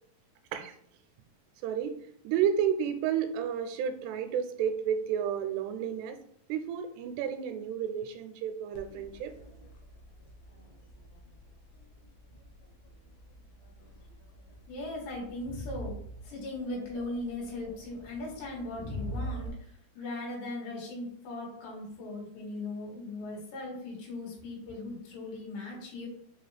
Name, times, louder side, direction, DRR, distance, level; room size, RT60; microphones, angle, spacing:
voice 1, 1.6-2.0 2.2-6.2 6.5-9.3, right 8 dB, 90° right, 8 dB, 2.6 m, -31 dB
Crowd, 8.7-19.5, equal, 70° left, 2.1 m, -44 dB
voice 2, 14.7-16.0 16.2-19.7 20.0-26.1, left 2 dB, 85° left, -3 dB, 3.7 m, -38 dB
7.0 x 2.4 x 3.2 m, 0.65 s
omnidirectional pair, 4.7 m